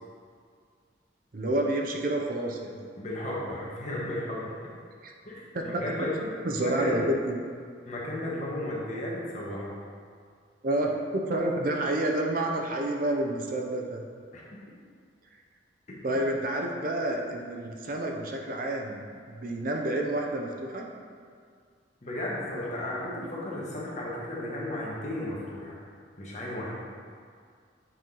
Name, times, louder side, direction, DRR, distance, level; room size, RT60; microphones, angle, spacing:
voice 1, 1.3-2.8 5.0-5.1 5.5-5.9 6.2-7.4 10.6-14.1 16.0-20.8, right 1 dB, 45° right, 1 dB, 0.6 m, -29 dB
voice 2, 3.0-4.7 5.2-6.2 6.6-7.0 7.8-9.8 14.3-14.4 22.0-25.8 26.2-26.9, left 1 dB, 40° left, -5 dB, 1.4 m, -34 dB
7.6 x 4.5 x 3.9 m, 2.1 s
head